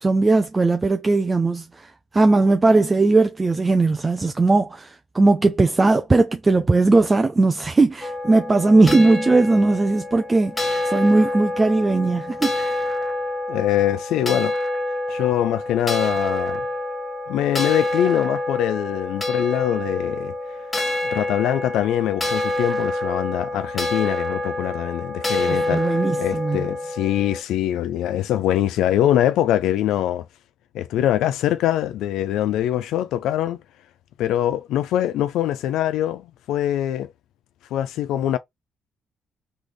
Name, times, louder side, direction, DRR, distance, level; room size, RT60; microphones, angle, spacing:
voice 1, 0.0-12.9 25.5-26.7, right 3 dB, 25° right, 0.6 m, -19 dB
sound 1, 8.0-27.4, left 1 dB, 20° left, 1.5 m, -27 dB
voice 2, 13.5-14.6 15.1-16.6 17.3-20.3 21.1-30.3 30.7-33.6 34.2-37.1 37.7-38.4, left 12 dB, 90° left, 0.3 m, -23 dB
3.9 x 3.3 x 3.0 m
cardioid pair, 90°, 0 cm